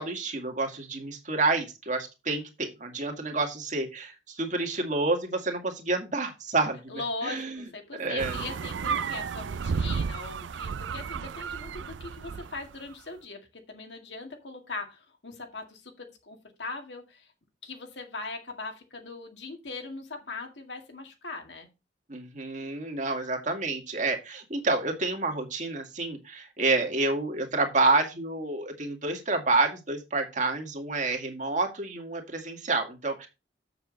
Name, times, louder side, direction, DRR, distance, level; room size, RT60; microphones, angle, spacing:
voice 1, 0.0-4.1 4.4-6.8 7.2-7.6 8.0-8.4 22.1-33.3, right 3 dB, 45° right, 4 dB, 2.0 m, -28 dB
voice 2, 6.9-17.3 17.6-21.7, left 3 dB, 70° left, 3 dB, 2.1 m, -40 dB
sound 1, 8.2-12.7, right 5 dB, 85° right, 0.4 m, -32 dB
7.6 x 7.0 x 4.0 m, 0.27 s
head